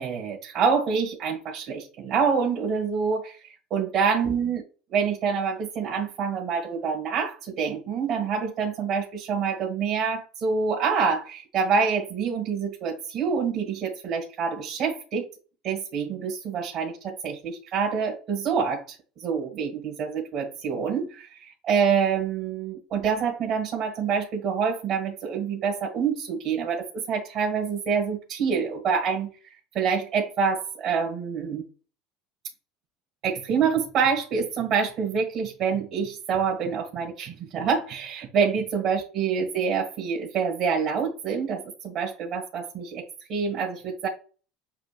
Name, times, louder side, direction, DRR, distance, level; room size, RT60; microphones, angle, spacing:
voice 1, 0.0-4.6 4.9-15.3 15.6-31.6 33.2-44.1, right 6 dB, 55° right, -2 dB, 1.6 m, -26 dB
7.7 x 2.7 x 2.4 m, 0.37 s
hypercardioid pair, 80°, 0 cm